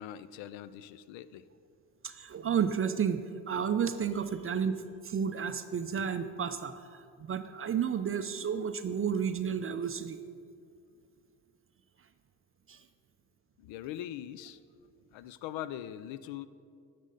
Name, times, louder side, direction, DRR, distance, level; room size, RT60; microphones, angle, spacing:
voice 1, 0.0-1.5 13.6-14.6 15.1-16.5, left 11 dB, 65° left, 15 dB, 0.5 m, -41 dB
voice 2, 2.0-3.2 3.5-10.2 12.7-12.8, right 7 dB, 30° right, 9 dB, 0.4 m, -32 dB
10.0 x 6.5 x 3.9 m, 2.3 s
hypercardioid pair, 55°, 50 cm